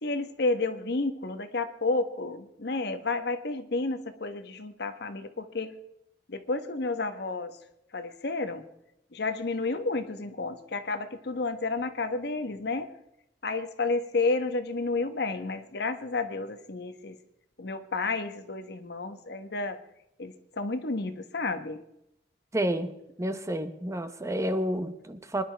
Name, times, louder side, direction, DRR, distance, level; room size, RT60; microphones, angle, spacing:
voice 1, 0.0-5.7 6.3-7.6 7.9-8.6 9.1-12.9 13.4-17.2 17.6-19.8 20.2-21.8, left 3 dB, 65° left, 9 dB, 1.1 m, -31 dB
voice 2, 22.5-22.9 23.2-25.4, right 1 dB, 15° right, 10 dB, 0.8 m, -30 dB
24.5 x 11.0 x 3.4 m, 0.83 s
head